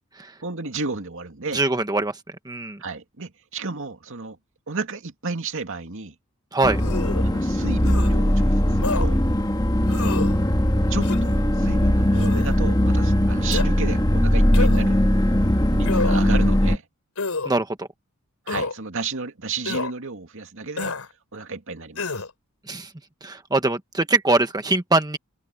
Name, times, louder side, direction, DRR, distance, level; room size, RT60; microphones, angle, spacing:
voice 1, 0.4-1.6 2.8-4.4 4.7-6.1 7.2-9.2 10.9-15.0 15.7-16.8 18.5-20.9 21.3-22.1, right 4 dB, 65° right, 2.5 m, -32 dB
voice 2, 1.5-2.2 2.4-2.8 6.5-6.8 17.4-17.9 22.7-22.9 23.2-25.2, right 2 dB, 20° right, 1.3 m, -22 dB
sound 1, 6.6-16.8, equal, 20° left, 1.7 m, -20 dB
sound 2, 6.8-7.3 7.8-8.1 8.8-9.1 9.9-10.3 11.0-11.4 12.1-12.5 13.5-13.7 14.5-14.9 15.8-16.3 17.2-17.5 18.5-18.7 19.7-19.9 20.8-21.1 22.0-22.3, left 3 dB, 90° left, 3.6 m, -28 dB
open air
head